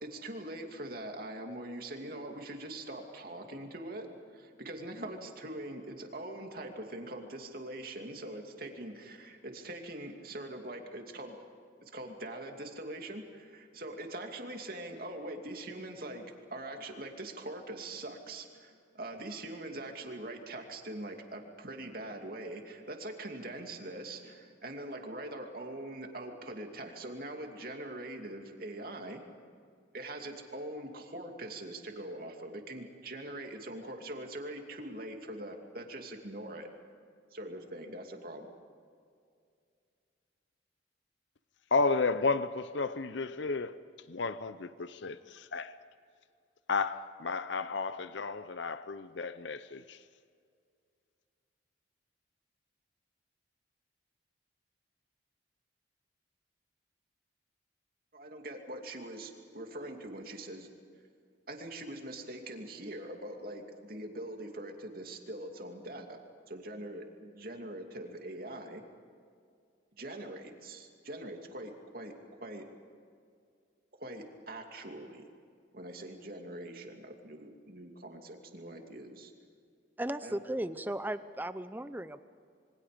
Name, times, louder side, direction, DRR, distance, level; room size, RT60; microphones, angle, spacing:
voice 1, 0.0-11.4 11.8-16.2 16.5-29.2 29.9-36.7 37.3-38.5 58.1-60.7 61.5-66.2 66.5-68.8 70.0-72.1 72.4-72.6 74.0-75.2 75.7-79.3 80.2-80.4, right 1 dB, 50° right, 2.7 m, -43 dB
voice 2, 41.7-43.7 44.1-45.7 46.7-50.0, left 4 dB, 75° left, 0.7 m, -32 dB
voice 3, 80.0-82.2, right 1 dB, 10° right, 0.6 m, -36 dB
27.5 x 24.0 x 5.2 m
head